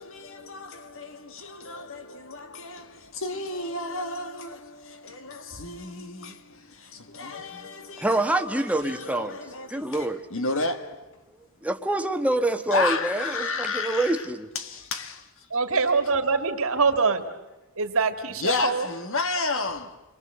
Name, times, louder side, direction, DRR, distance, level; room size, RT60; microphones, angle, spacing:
voice 1, 0.0-11.1 12.7-15.5 18.4-20.0, left 3 dB, 65° left, 1.9 m, -32 dB
voice 2, 8.0-9.4 9.7-10.2 11.6-14.5, right 1 dB, 5° right, 1.3 m, -26 dB
voice 3, 15.5-17.2 17.8-18.9, right 4 dB, 65° right, 2.1 m, -24 dB
29.5 x 23.0 x 7.9 m
head